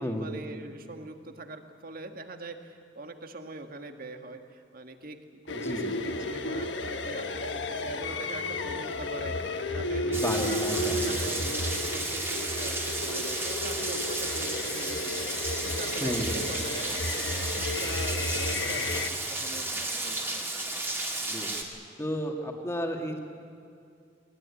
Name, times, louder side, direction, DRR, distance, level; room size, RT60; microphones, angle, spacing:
voice 1, 0.0-5.2 5.4-20.6, right 2 dB, 55° right, 6 dB, 1.7 m, -43 dB
sound 1, 5.5-19.1, left 2 dB, 75° left, 1.3 m, -33 dB
voice 2, 5.5-5.9 10.1-11.0 16.0-16.4 21.3-21.6 22.0-23.2, equal, 15° left, 2 dB, 2.3 m, -32 dB
Rain, 10.1-21.6, right 2 dB, 15° right, 2.5 m, -33 dB
20.5 x 19.5 x 10.0 m, 2.4 s
head